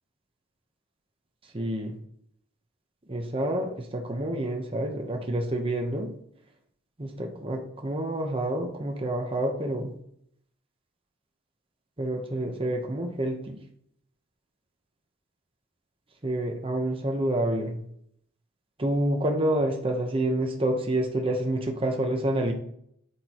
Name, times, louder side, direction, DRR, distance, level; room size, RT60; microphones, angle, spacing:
voice 1, 1.5-2.0 3.1-6.1 7.0-9.9 12.0-13.6 16.2-17.8 18.8-22.5, right 1 dB, 25° right, 2 dB, 1.0 m, -28 dB
9.8 x 8.3 x 3.0 m, 0.70 s
head